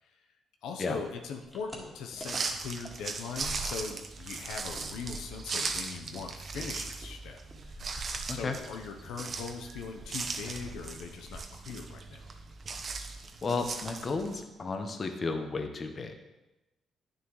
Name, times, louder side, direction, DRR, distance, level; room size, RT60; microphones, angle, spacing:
voice 1, 0.6-7.8 8.3-12.3, left 5 dB, 85° left, 3 dB, 0.7 m, -40 dB
sound 1, 1.0-4.1 4.3-8.8 9.1-11.9 12.2-12.9 13.2-13.4 13.7-13.8 14.1-14.7, right 1 dB, 10° left, 1.9 m, -47 dB
sound 2, 2.2-14.4, right 4 dB, 45° right, 0.9 m, -38 dB
voice 2, 13.4-16.1, left 4 dB, 40° left, 5 dB, 1.0 m, -33 dB
9.6 x 6.7 x 3.1 m, 1.0 s
cardioid pair, 90°, 0 cm